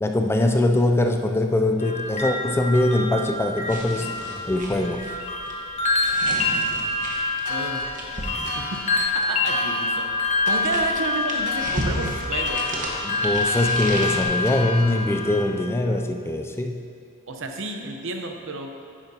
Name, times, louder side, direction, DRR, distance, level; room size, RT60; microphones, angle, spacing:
voice 1, 0.0-4.1 4.5-5.1 13.0-16.8, left 1 dB, 10° left, 4 dB, 0.3 m, -22 dB
sound 1, 1.8-15.4, left 2 dB, 30° left, 0.9 m, -26 dB
sound 2, 3.7-9.4 10.3-14.2, right 1 dB, 35° right, 1.3 m, -34 dB
sound 3, 7.4-15.6, left 5 dB, 70° left, 0.6 m, -39 dB
voice 2, 7.5-7.9 8.6-9.0 9.3-12.6 17.3-18.7, right 3 dB, 60° right, 3 dB, 0.8 m, -31 dB
10.5 x 9.9 x 2.8 m, 2.4 s
head